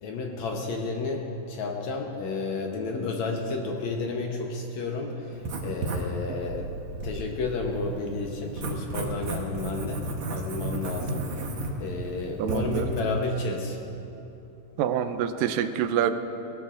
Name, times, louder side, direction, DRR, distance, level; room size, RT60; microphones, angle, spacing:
voice 1, 0.0-6.7 7.0-10.0 10.3-11.3 11.8-13.8, left 3 dB, 65° left, 1 dB, 2.0 m, -31 dB
Writing, 5.3-13.0, right 2 dB, 60° right, 2.0 m, -34 dB
voice 2, 12.4-12.9 14.8-16.1, right 9 dB, 80° right, 9 dB, 2.2 m, -26 dB
19.5 x 18.0 x 2.5 m, 2.9 s
omnidirectional pair, 3.9 m